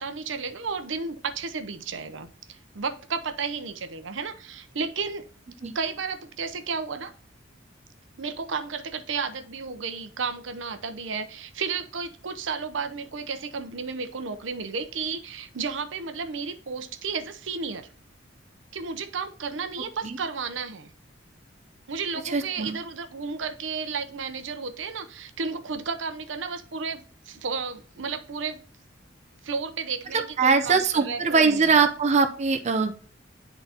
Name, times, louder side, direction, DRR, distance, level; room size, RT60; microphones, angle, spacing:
voice 1, 0.0-5.3 5.7-7.1 8.2-17.9 18.7-20.9 21.9-28.6 29.4-31.8, right 5 dB, 75° right, 8 dB, 0.7 m, -33 dB
voice 2, 22.2-22.8 30.4-32.9, right 5 dB, 35° right, 6 dB, 0.6 m, -22 dB
10.0 x 4.0 x 2.8 m, 0.43 s
head